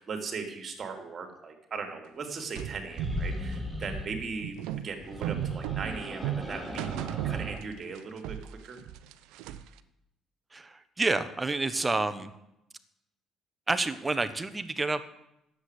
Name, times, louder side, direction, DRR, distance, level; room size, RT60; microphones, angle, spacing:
voice 1, 0.0-4.6 4.8-8.8, right 4 dB, 45° right, 4 dB, 3.1 m, -38 dB
sound 1, 2.6-8.0 8.2-9.8, right 11 dB, 80° right, 0.7 m, -35 dB
sound 2, 2.9-4.1 5.0-7.6, left 1 dB, 5° left, 2.6 m, -37 dB
voice 2, 10.5-12.3 13.7-15.1, right 3 dB, 20° right, 11 dB, 1.3 m, -29 dB
10.0 x 8.0 x 8.3 m, 0.86 s
hypercardioid pair, 60°, 0 cm